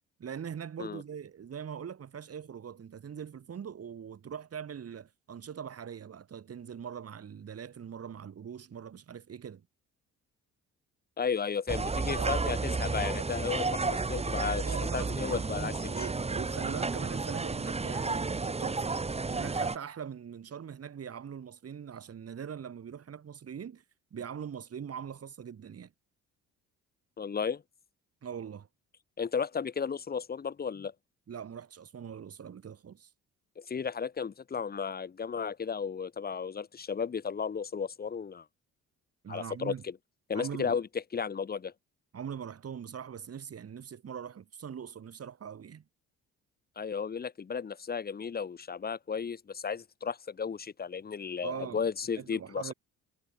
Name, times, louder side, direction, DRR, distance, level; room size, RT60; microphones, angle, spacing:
voice 1, 0.2-9.6 12.2-12.4 14.6-15.5 15.9-19.0 19.3-23.8 24.1-25.9 28.2-28.7 31.3-33.1 39.2-39.8 40.3-40.8 42.1-45.8 51.4-51.8 52.1-52.7, right 8 dB, 50° right, 7.3 m, -42 dB
voice 2, 11.2-14.6 14.9-16.1 27.2-27.6 29.2-30.9 33.6-38.4 39.3-39.9 40.3-41.7 46.8-52.7, left 6 dB, 30° left, 1.0 m, -34 dB
sound 1, 11.7-19.8, right 3 dB, 20° right, 1.6 m, -32 dB
cardioid pair, 90°, 30 cm